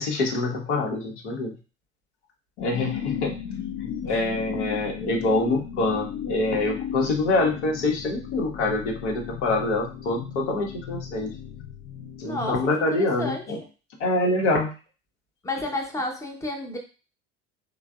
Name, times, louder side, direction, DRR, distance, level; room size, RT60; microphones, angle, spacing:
voice 1, 0.0-1.6 2.6-3.4 3.8-11.4 12.2-13.6 14.0-14.7, left 2 dB, 75° left, 0 dB, 0.8 m, -25 dB
sound 1, 2.6-12.7, left 8 dB, 45° left, 0.4 m, -36 dB
voice 2, 12.2-13.4 15.4-16.8, left 1 dB, 10° left, 1 dB, 0.7 m, -31 dB
3.2 x 2.1 x 2.3 m, 0.34 s
hypercardioid pair, 65°, 35 cm